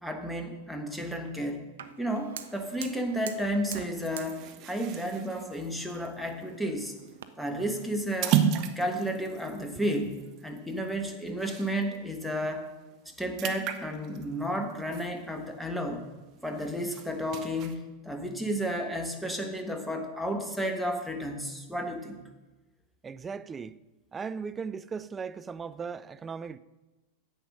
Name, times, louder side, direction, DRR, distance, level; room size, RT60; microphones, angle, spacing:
voice 1, 0.0-1.6 2.0-6.9 7.4-8.4 8.7-12.7 13.0-16.0 16.4-22.2, equal, ahead, 1.4 m, -32 dB
Fire, 1.8-7.3, right 9 dB, 60° right, 0.6 m, -46 dB
sound 1, 4.0-12.0 12.4-12.5 12.8-15.8 16.2-17.8, right 9 dB, 40° right, 0.9 m, -34 dB
voice 2, 23.0-23.8 24.1-26.6, right 5 dB, 20° right, 0.4 m, -37 dB
10.0 x 8.1 x 5.4 m
figure-of-eight pair, 90°, 0 cm